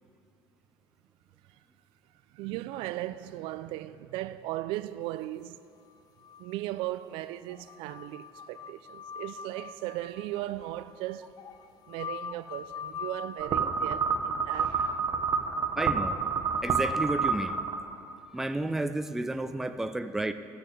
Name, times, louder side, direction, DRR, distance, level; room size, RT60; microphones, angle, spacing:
voice 1, 2.3-5.6 6.4-11.3 11.9-15.3, right 15 dB, 80° right, 0.4 m, -37 dB
sound 1, 5.9-6.9 7.2-7.3 7.5-13.5, left 7 dB, 50° left, 0.6 m, -43 dB
sound 2, 13.4-18.1, right 5 dB, 40° right, 0.9 m, -29 dB
voice 2, 15.8-16.2 16.6-17.6 18.3-20.3, right 2 dB, 5° right, 0.3 m, -31 dB
13.0 x 6.9 x 7.2 m
cardioid pair, 150°, 9 cm